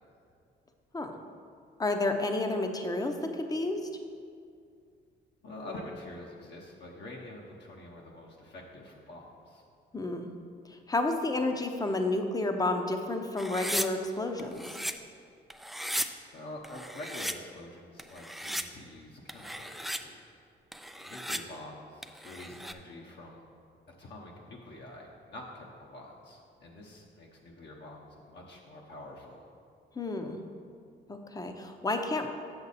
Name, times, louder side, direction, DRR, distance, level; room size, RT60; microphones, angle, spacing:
voice 1, 1.8-3.9 9.9-10.3 10.7-14.7 30.0-30.4 31.1-32.3, left 2 dB, 20° left, 5 dB, 0.7 m, -31 dB
voice 2, 5.4-9.6 16.3-20.2 21.0-23.4 24.0-29.5, left 1 dB, 60° left, -2 dB, 1.0 m, -46 dB
sound 1, 13.4-13.9 14.4-14.9 15.5-16.1 16.6-17.3 18.0-18.6 19.3-20.0 20.7-21.4 22.0-22.7, equal, ahead, 0.3 m, -36 dB
7.3 x 6.9 x 4.1 m, 2.3 s
cardioid pair, 90°, 20 cm